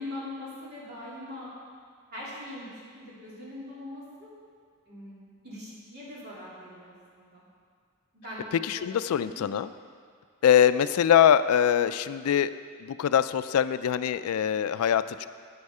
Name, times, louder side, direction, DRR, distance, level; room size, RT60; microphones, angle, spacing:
voice 1, 0.0-1.5 2.1-4.3 4.9-7.5 8.1-8.5 8.8-8.9 9.4-9.5, left 1 dB, 50° right, -7 dB, 3.1 m, -41 dB
voice 2, 8.6-9.7 10.4-12.5 12.8-15.3, left 9 dB, 80° left, 14 dB, 0.3 m, -23 dB
8.8 x 8.3 x 5.5 m, 2.1 s
head